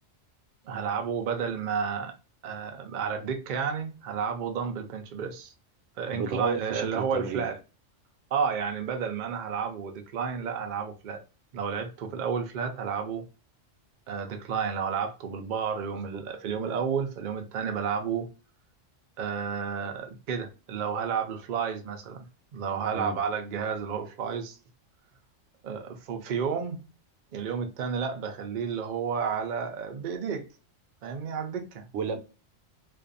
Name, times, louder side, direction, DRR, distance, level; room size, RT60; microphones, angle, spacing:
voice 1, 0.6-2.1 2.4-5.5 6.0-7.6 8.3-11.2 11.5-13.2 14.1-18.3 19.2-22.3 22.5-24.6 25.6-26.8 27.3-30.4 31.0-31.9, right 6 dB, 55° right, 0.5 m, -31 dB
voice 2, 6.1-7.5 15.9-16.2 22.9-23.2 31.9-32.2, right 5 dB, 80° right, 0.9 m, -32 dB
2.5 x 2.2 x 2.5 m
omnidirectional pair, 1.2 m